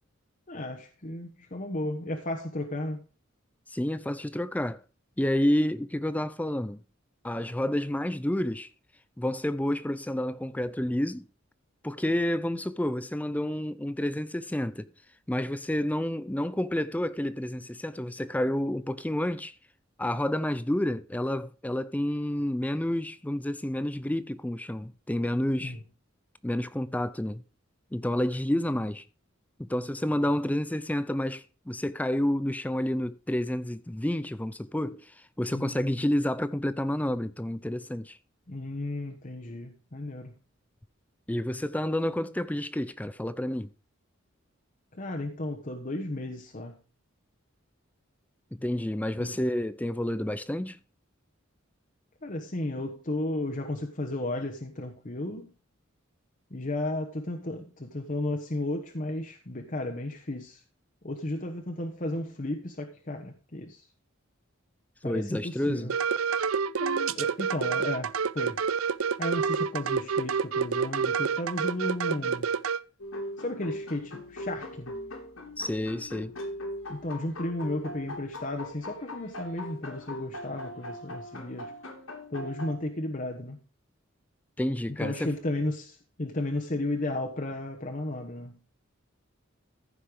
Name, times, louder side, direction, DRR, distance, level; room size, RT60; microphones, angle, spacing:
voice 1, 0.5-3.1 25.6-25.8 35.5-35.9 38.5-40.4 44.9-46.7 49.2-49.4 52.2-55.5 56.5-60.6 61.0-63.9 65.0-65.9 66.8-68.7 69.2-72.5 73.4-74.9 76.9-81.7 82.3-83.6 85.0-88.6, left 1 dB, 40° left, 1.1 m, -34 dB
voice 2, 3.7-4.8 5.2-6.8 7.2-8.7 9.2-11.3 11.8-14.9 15.3-19.5 20.0-25.8 26.4-27.4 27.9-29.0 29.6-38.2 41.3-43.7 48.6-50.8 65.0-65.9 75.6-76.3 84.6-85.3, left 1 dB, 5° left, 0.4 m, -29 dB
sound 1, 65.9-72.8, right 6 dB, 85° right, 0.6 m, -28 dB
sound 2, 73.0-82.8, left 1 dB, 85° left, 3.4 m, -40 dB
14.5 x 5.7 x 4.9 m
head